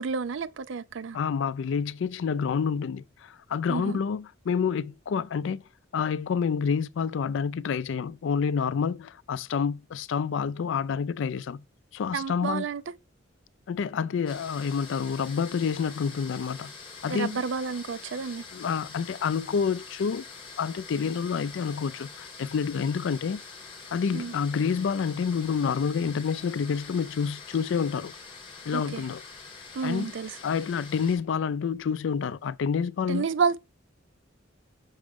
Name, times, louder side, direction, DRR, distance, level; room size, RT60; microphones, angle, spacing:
voice 1, 0.0-1.2 3.7-4.0 12.1-12.9 17.1-18.5 24.1-24.3 28.7-29.1 29.7-30.4 33.1-33.6, right 5 dB, 70° right, 0.5 m, -30 dB
voice 2, 1.1-5.6 5.9-11.6 11.9-12.6 13.7-16.7 17.0-17.3 18.5-20.2 20.6-23.4 23.9-28.1 28.7-29.2 29.8-30.1 30.4-33.3, left 6 dB, 70° left, 0.4 m, -28 dB
sound 1, 14.3-31.2, left 5 dB, 30° left, 2.9 m, -45 dB
6.2 x 4.8 x 3.5 m
head